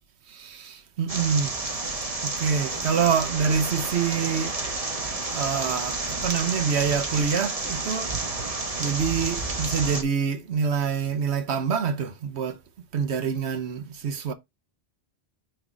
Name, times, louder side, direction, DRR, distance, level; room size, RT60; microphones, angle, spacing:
voice 1, 0.3-1.5 2.2-4.6 5.3-8.1 8.8-12.6 12.9-14.3, right 6 dB, 85° right, 1.1 m, -26 dB
sound 1, 1.1-10.0, right 3 dB, 35° right, 1.1 m, -30 dB
6.0 x 3.3 x 4.9 m
omnidirectional pair, 1.1 m